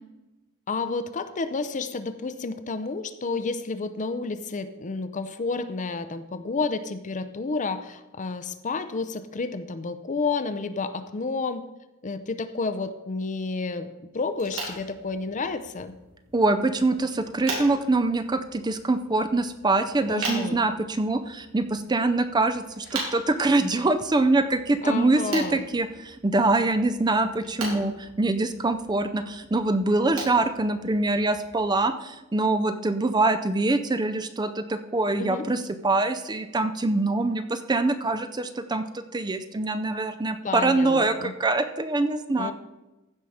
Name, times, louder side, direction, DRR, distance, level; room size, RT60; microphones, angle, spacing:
voice 1, 0.7-11.6 12.0-13.9 14.1-15.9 20.1-20.6 24.8-25.6 35.2-35.5 40.4-41.3 42.4-42.5, left 4 dB, 35° left, 12 dB, 0.5 m, -30 dB
sound 1, 14.3-31.6, right 2 dB, 85° right, 4.0 m, -40 dB
voice 2, 16.3-42.5, right 2 dB, 20° right, 10 dB, 0.5 m, -24 dB
15.0 x 5.7 x 4.9 m, 1.0 s
head